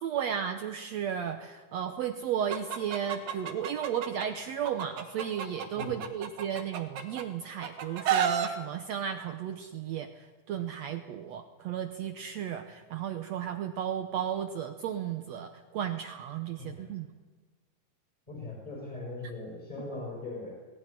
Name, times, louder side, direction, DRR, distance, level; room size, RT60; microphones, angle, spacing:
voice 1, 0.0-17.1, right 9 dB, 65° right, 7 dB, 1.8 m, -34 dB
Chicken rooster, 2.5-4.3 4.6-7.2 7.6-8.5, right 8 dB, 90° right, 3.5 m, -30 dB
voice 2, 16.6-16.9 18.3-20.5, left 2 dB, 10° left, -2 dB, 5.7 m, -40 dB
20.0 x 16.5 x 10.0 m, 1.3 s
omnidirectional pair, 3.9 m